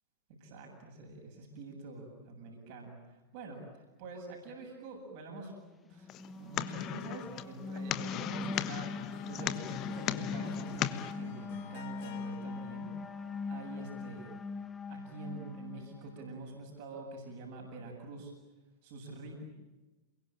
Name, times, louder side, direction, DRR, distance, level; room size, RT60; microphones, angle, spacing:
voice 1, 0.4-5.5 5.9-6.1 6.4-14.3 14.9-18.3 18.8-19.4, right 2 dB, 50° right, 1 dB, 8.0 m, -46 dB
sound 1, 5.8-16.4, left 4 dB, 15° left, 1.4 m, -42 dB
sound 2, 6.1-11.1, left 12 dB, 35° left, 1.2 m, -37 dB
Harp, 8.8-14.5, left 9 dB, 50° left, 2.2 m, -53 dB
29.0 x 22.5 x 9.0 m, 1.1 s
figure-of-eight pair, 90°, 0 cm